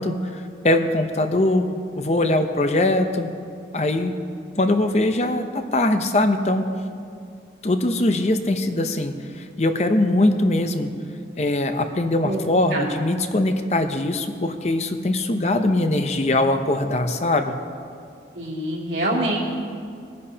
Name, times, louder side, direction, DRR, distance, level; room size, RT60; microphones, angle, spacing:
voice 1, 0.0-1.7 2.0-3.3 3.7-4.2 4.6-6.7 7.6-9.1 9.6-10.9 11.4-17.6, left 1 dB, 40° left, 7 dB, 0.7 m, -21 dB
voice 2, 18.3-19.4, right 1 dB, 85° right, -4 dB, 2.7 m, -25 dB
20.5 x 10.5 x 2.9 m, 2.3 s
head